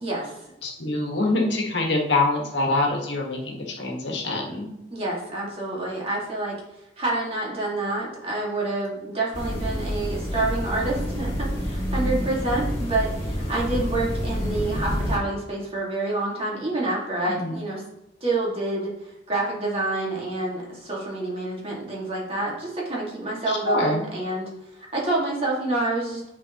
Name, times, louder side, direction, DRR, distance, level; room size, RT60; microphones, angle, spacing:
voice 1, 0.0-0.4 4.9-6.6 7.0-17.8 18.2-24.5 24.8-26.3, right 2 dB, 30° right, -4 dB, 1.9 m, -28 dB
voice 2, 0.6-4.7 17.3-17.5 23.7-24.0, left 2 dB, 80° left, 0 dB, 1.5 m, -25 dB
sound 1, 9.3-15.2, equal, 30° left, 2.2 m, -28 dB
10.0 x 4.7 x 2.9 m, 0.88 s
head